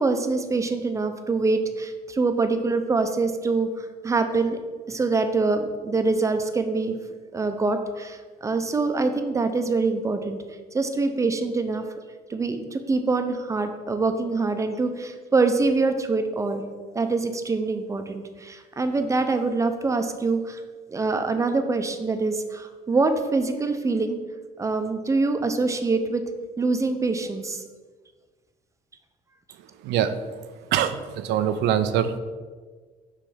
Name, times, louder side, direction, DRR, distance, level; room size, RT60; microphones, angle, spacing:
voice 1, 0.0-4.6 4.9-6.9 7.3-10.4 10.7-11.8 12.3-16.6 16.9-20.6 20.9-24.2 24.6-26.2 26.6-27.6, right 3 dB, 20° right, 7 dB, 0.6 m, -24 dB
voice 2, 29.8-30.2 30.7-32.2, right 9 dB, 85° right, 11 dB, 0.5 m, -23 dB
6.1 x 3.4 x 5.6 m, 1.4 s
cardioid pair, 110°, 17 cm